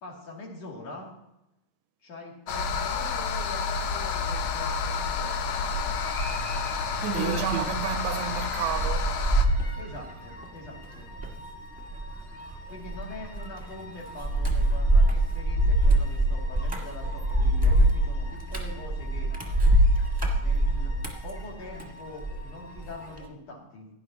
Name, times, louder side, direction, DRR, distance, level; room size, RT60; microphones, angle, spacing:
voice 1, 0.0-1.1 2.0-5.7 9.7-11.1 12.7-19.3 20.3-20.9 21.2-23.9, left 2 dB, 60° left, 3.9 m, -43 dB
sound 1, 2.5-9.4, left 5 dB, 75° left, 1.2 m, -30 dB
sound 2, 4.6-23.2, left 1 dB, 25° left, 2.5 m, -48 dB
sound 3, 5.7-22.4 22.8-23.2, right 1 dB, 10° right, 1.4 m, -25 dB
voice 2, 7.0-9.2, right 11 dB, 80° right, 1.8 m, -31 dB
17.0 x 11.0 x 3.0 m
omnidirectional pair, 3.3 m